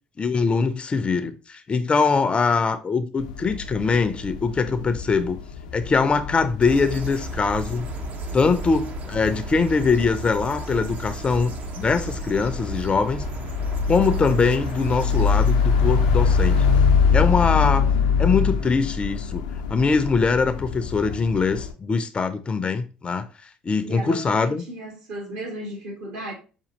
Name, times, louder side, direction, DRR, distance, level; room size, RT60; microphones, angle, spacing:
voice 1, 0.2-5.4 5.7-7.9 8.3-13.2 13.9-16.7 17.1-17.9 18.2-19.4 19.7-23.3 23.6-24.6, left 4 dB, 30° left, 0.4 m, -22 dB
sound 1, 3.2-21.7, left 6 dB, 85° left, 0.4 m, -25 dB
sound 2, 6.6-16.8, right 3 dB, 45° right, 0.6 m, -35 dB
voice 2, 23.8-26.3, right 1 dB, 70° right, 1.8 m, -35 dB
5.2 x 2.4 x 2.8 m
hypercardioid pair, 65°, 4 cm